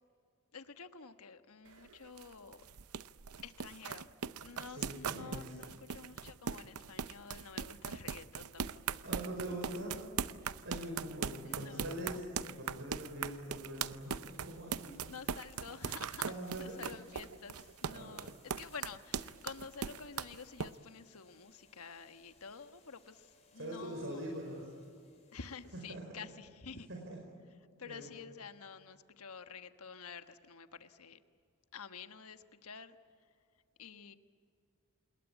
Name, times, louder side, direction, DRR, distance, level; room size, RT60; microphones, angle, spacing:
voice 1, 0.5-2.6 3.4-4.1 4.4-9.1 11.4-12.0 15.1-24.2 25.3-26.9 27.8-31.2 31.7-33.0 33.8-34.2, left 5 dB, 80° left, 9 dB, 1.3 m, -50 dB
sound 1, 1.7-20.7, right 7 dB, 85° right, 0.7 m, -40 dB
voice 2, 4.7-5.6 9.0-10.0 10.6-14.9 16.2-16.8 17.9-18.3 23.6-24.7 25.7-26.0 26.9-27.2 27.9-28.2, right 1 dB, 60° right, 0 dB, 4.9 m, -43 dB
sound 2, 13.3-26.1, left 4 dB, 30° left, 5.5 m, -67 dB
27.5 x 21.5 x 8.3 m, 2.3 s
head